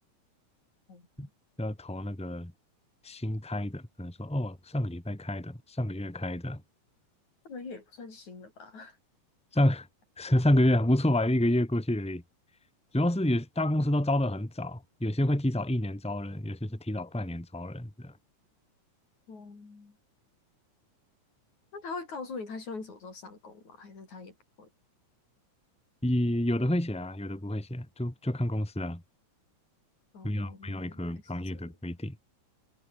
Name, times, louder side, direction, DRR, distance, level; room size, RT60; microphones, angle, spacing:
voice 1, 0.9-1.3 7.5-9.0 19.3-20.0 21.7-24.7 30.1-31.0 31.5-31.7, left 4 dB, 70° left, 7.3 m, -43 dB
voice 2, 1.6-2.5 3.0-6.6 9.5-9.9 10.2-12.2 12.9-18.1 26.0-29.0 30.2-32.2, left 1 dB, ahead, 3.0 m, -29 dB
omnidirectional pair, 3.5 m